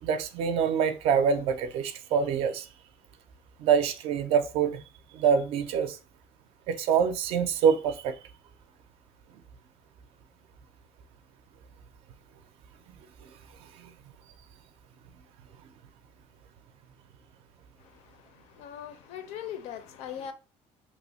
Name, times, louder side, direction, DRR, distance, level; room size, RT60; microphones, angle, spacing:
voice 1, 0.0-2.7 3.6-4.8 5.1-6.0 6.7-8.2 13.2-13.3, right 7 dB, 55° right, 0.4 m, -25 dB
voice 2, 18.5-20.3, left 9 dB, 65° left, 0.5 m, -39 dB
2.9 x 2.0 x 4.0 m
cardioid pair, 175°, 12 cm